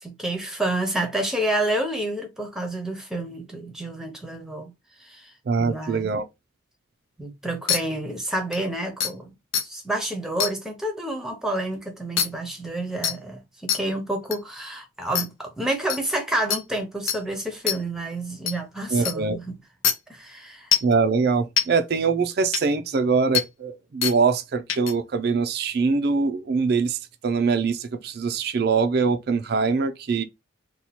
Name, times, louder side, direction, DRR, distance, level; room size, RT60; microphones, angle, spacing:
voice 1, 0.0-4.7 5.0-5.3 5.6-6.1 7.2-9.3 9.6-19.6 20.1-20.7, right 1 dB, ahead, 0.7 m, -29 dB
voice 2, 5.5-6.2 18.9-19.4 20.8-27.0 27.2-30.2, right 4 dB, 50° right, 0.4 m, -23 dB
sound 1, 7.7-7.8 8.5-8.6 9.0-9.1 9.5-9.6 10.4-10.5 12.2-12.3 13.0-13.2 13.7-13.8 14.3-14.4 15.2-15.3 15.9-16.0 16.5-16.6 17.1-17.2 17.7-17.8 18.5-18.6 19.1-19.2 19.8-19.9 20.7-20.9 21.6-21.7 22.5-22.6 23.3-23.5 24.0-24.2 24.7-24.9, left 8 dB, 75° left, 0.6 m, -23 dB
2.8 x 2.3 x 4.1 m
head